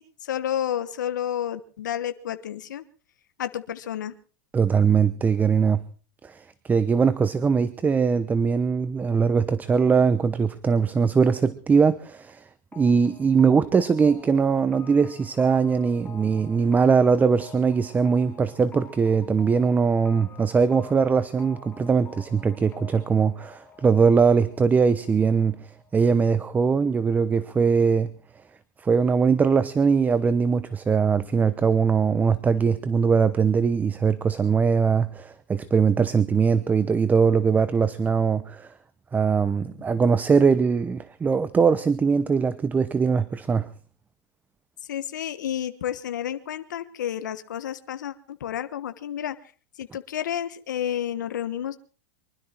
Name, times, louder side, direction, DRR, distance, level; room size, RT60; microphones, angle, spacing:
voice 1, 0.0-2.8 3.4-4.1 44.9-49.4 49.8-51.8, left 10 dB, 85° left, 11 dB, 1.3 m, -30 dB
voice 2, 4.5-5.8 6.2-12.5 12.8-25.7 25.9-28.1 28.8-38.7 39.1-43.7, right 5 dB, 15° right, 16 dB, 0.9 m, -21 dB
sound 1, 12.7-26.2, left 4 dB, 20° left, 2.5 m, -48 dB
24.0 x 13.0 x 4.5 m, 0.40 s
hypercardioid pair, 120°, 10 cm